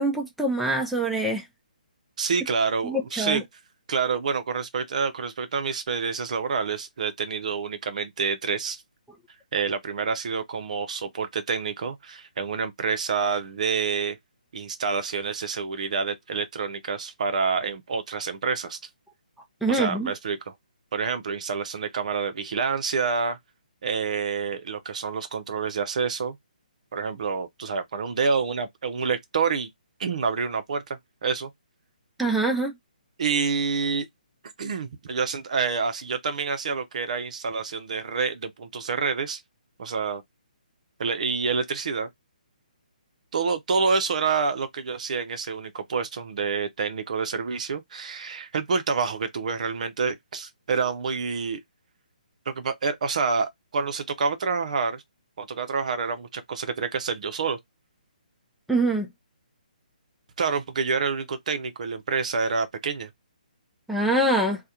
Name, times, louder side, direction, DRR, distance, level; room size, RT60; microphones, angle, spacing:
voice 1, 0.0-1.4 2.8-3.4 19.6-20.1 32.2-32.7 58.7-59.1 63.9-64.6, right 2 dB, ahead, 0.4 m, -24 dB
voice 2, 2.2-3.4 3.9-8.8 9.5-14.2 14.5-18.8 19.7-20.5 20.9-23.4 23.8-26.4 26.9-29.7 30.0-31.5 33.2-34.1 34.6-39.4 39.8-40.2 41.0-42.1 43.3-51.6 52.5-55.0 55.4-57.6 60.4-63.1, right 5 dB, 55° right, 0.5 m, -27 dB
2.3 x 2.1 x 2.7 m
figure-of-eight pair, 145°, 5 cm